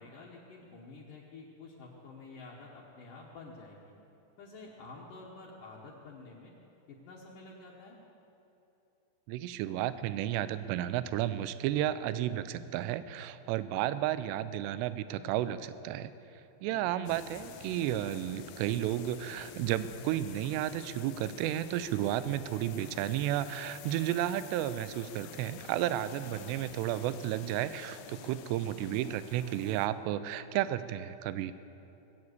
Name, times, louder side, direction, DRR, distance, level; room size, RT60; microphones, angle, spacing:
voice 1, 0.0-4.0 4.4-6.5 6.9-8.0 16.7-16.8 26.3-26.5, left 3 dB, 65° left, -4 dB, 2.3 m, -49 dB
voice 2, 9.3-16.1 16.6-31.5, right 12 dB, 85° right, 13 dB, 2.7 m, -32 dB
sound 1, 17.1-29.9, left 11 dB, 80° left, 2.4 m, -49 dB
20.0 x 8.4 x 8.1 m, 2.9 s
omnidirectional pair, 5.0 m